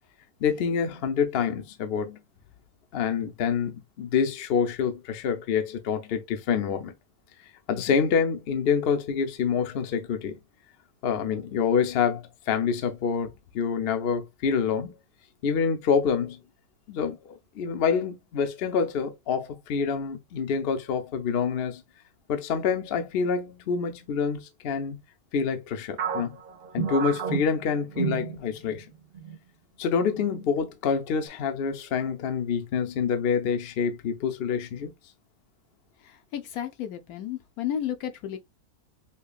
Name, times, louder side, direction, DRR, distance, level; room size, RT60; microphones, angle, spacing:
voice 1, 0.4-2.2 2.9-6.9 7.7-10.3 11.0-14.9 15.4-16.4 16.9-17.2 17.5-21.8 22.3-25.0 25.3-26.3 26.7-28.9 29.8-34.9, left 6 dB, 55° left, 0.7 m, -27 dB
sound 1, 26.0-28.8 29.1-29.4 30.0-30.5, right 7 dB, 75° right, 0.5 m, -31 dB
voice 2, 36.0-38.4, left 10 dB, 75° left, 1.1 m, -33 dB
5.6 x 2.2 x 2.3 m
omnidirectional pair, 1.7 m